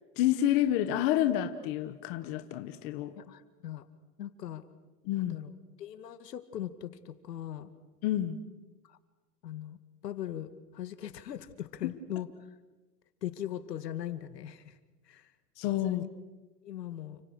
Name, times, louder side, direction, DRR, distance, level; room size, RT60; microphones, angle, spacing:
voice 1, 0.2-3.1 5.0-5.4 8.0-8.4 11.8-11.9 15.6-16.0, left 12 dB, 20° left, 9 dB, 0.9 m, -29 dB
voice 2, 3.1-3.8 4.2-4.6 5.2-5.5 5.8-7.7 8.8-9.0 9.4-9.8 10.0-12.3 13.2-14.8 15.1-15.3 15.8-16.1 16.6-17.2, left 11 dB, 80° left, 11 dB, 2.3 m, -40 dB
29.5 x 27.0 x 6.5 m, 1.1 s
supercardioid pair, 170°, 48 cm